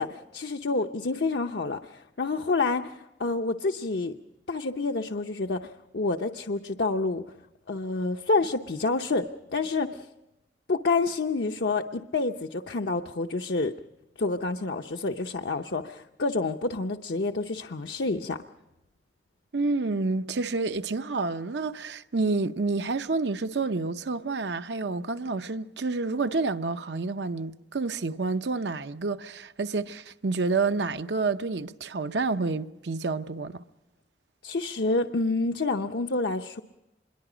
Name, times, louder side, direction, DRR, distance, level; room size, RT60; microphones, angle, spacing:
voice 1, 0.0-4.1 4.5-7.2 7.7-10.1 10.7-13.7 14.2-18.4 34.4-36.6, left 3 dB, 65° left, 0.7 m, -28 dB
voice 2, 19.5-33.6, right 3 dB, 75° right, 0.8 m, -29 dB
26.0 x 22.0 x 5.0 m
head